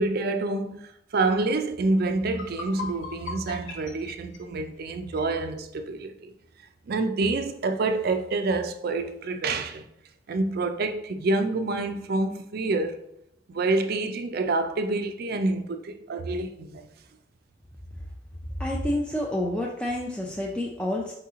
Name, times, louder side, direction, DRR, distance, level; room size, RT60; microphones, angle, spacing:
voice 1, 0.0-6.3 6.9-9.9 10.3-13.0 13.5-16.9, right 3 dB, 55° right, 0.4 m, -27 dB
sound 1, 1.8-1.9 2.2-5.3, left 4 dB, 80° left, 0.8 m, -40 dB
voice 2, 18.6-21.1, left 1 dB, 5° left, 0.4 m, -28 dB
4.9 x 3.0 x 3.6 m
head